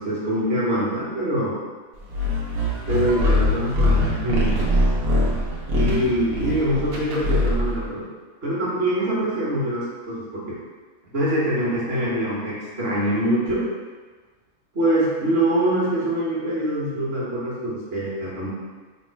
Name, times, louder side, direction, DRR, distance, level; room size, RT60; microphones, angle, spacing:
voice 1, 0.0-1.5 2.9-4.5 5.7-8.0 8.4-10.6 11.1-13.6 14.7-18.5, right 1 dB, 50° right, -8 dB, 1.3 m, -24 dB
sound 1, 2.1-7.9, left 1 dB, 80° right, 1.2 m, -22 dB
3.6 x 2.1 x 4.4 m, 1.4 s
omnidirectional pair, 1.4 m